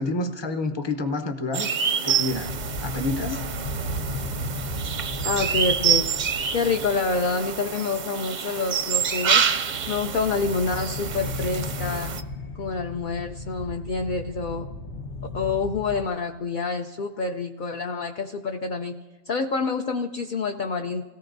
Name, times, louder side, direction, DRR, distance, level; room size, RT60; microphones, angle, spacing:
voice 1, 0.0-1.7 2.0-2.5 2.8-3.4, left 2 dB, 25° left, 6 dB, 0.9 m, -28 dB
sound 1, 1.5-12.2, right 7 dB, 50° right, 0.6 m, -27 dB
sound 2, 2.3-16.0, left 1 dB, 75° left, 1.1 m, -35 dB
voice 2, 5.2-6.1 6.5-9.4 9.9-12.1 12.6-14.7 15.3-18.9 19.3-21.0, left 4 dB, 55° left, 4 dB, 0.7 m, -27 dB
28.5 x 17.5 x 2.6 m, 1.3 s
omnidirectional pair, 1.2 m